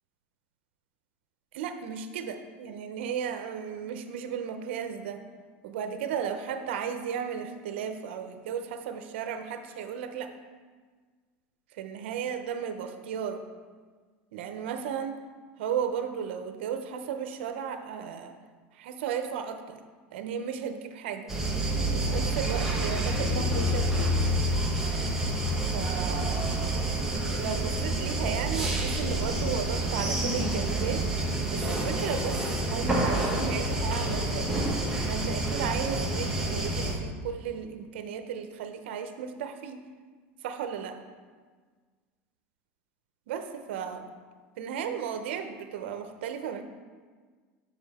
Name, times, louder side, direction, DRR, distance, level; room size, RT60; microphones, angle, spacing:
voice 1, 1.5-5.2 5.6-10.3 11.7-13.4 14.3-15.2 15.6-18.4 18.7-19.8 20.1-21.3 21.9-24.1 25.6-26.4 27.2-31.0 31.5-34.5 35.0-39.8 40.4-41.0 43.3-44.1 44.6-46.6, right 7 dB, 85° right, 8 dB, 0.7 m, -34 dB
sound 1, 21.3-36.9, right 1 dB, 10° right, 1.2 m, -28 dB
6.9 x 5.5 x 4.2 m, 1.5 s
supercardioid pair, 130°, 6 cm